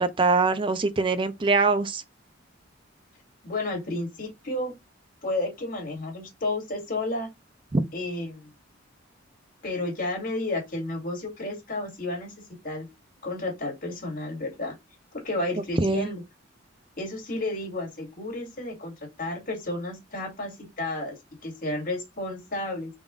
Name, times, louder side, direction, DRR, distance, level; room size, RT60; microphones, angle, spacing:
voice 1, 0.0-2.0 7.7-7.8 15.8-16.1, right 3 dB, 25° right, 0.5 m, -23 dB
voice 2, 3.4-4.7 5.2-7.3 7.9-8.5 9.6-12.3 12.6-12.9 13.2-14.7 15.1-16.2 17.0-21.2 21.4-22.9, left 2 dB, 45° left, 2.1 m, -32 dB
4.0 x 2.5 x 3.6 m
head